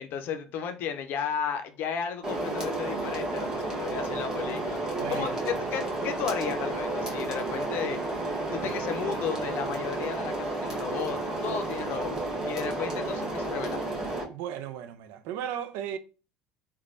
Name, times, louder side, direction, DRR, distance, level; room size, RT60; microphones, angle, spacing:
voice 1, 0.0-8.0 8.5-12.2 12.5-13.8, left 7 dB, 60° left, 0.5 m, -34 dB
sound 1, 2.2-14.2, right 2 dB, 15° right, 1.1 m, -32 dB
voice 2, 5.0-5.9 14.3-16.0, right 10 dB, 70° right, 0.3 m, -36 dB
3.1 x 2.2 x 2.5 m
hypercardioid pair, 80°, 4 cm